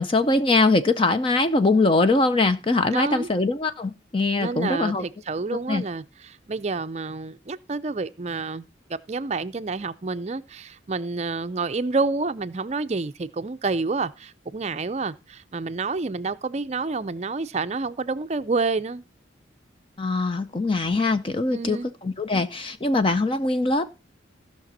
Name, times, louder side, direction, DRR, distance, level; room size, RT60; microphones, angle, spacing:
voice 1, 0.0-5.0 5.7-5.8 20.0-23.9, left 3 dB, 25° left, 0.5 m, -22 dB
voice 2, 2.9-3.3 4.4-8.7 9.1-19.0 21.5-21.9, right 3 dB, 35° right, 0.5 m, -28 dB
16.0 x 5.9 x 4.1 m
head